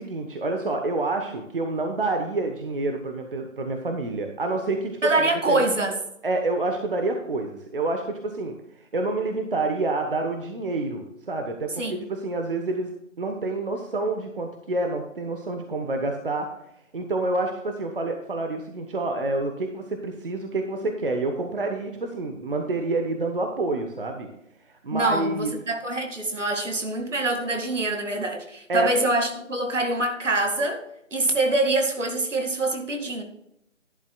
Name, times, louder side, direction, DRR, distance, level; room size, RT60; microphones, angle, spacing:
voice 1, 0.0-5.7 6.2-8.5 8.9-16.5 16.9-24.3 24.8-25.5 28.7-28.9, right 2 dB, 45° right, 4 dB, 1.2 m, -28 dB
voice 2, 5.0-5.9 11.8-11.9 24.9-30.8 31.1-33.2, right 2 dB, 70° right, 4 dB, 2.3 m, -25 dB
12.0 x 11.0 x 2.3 m, 0.79 s
figure-of-eight pair, 160°, 39 cm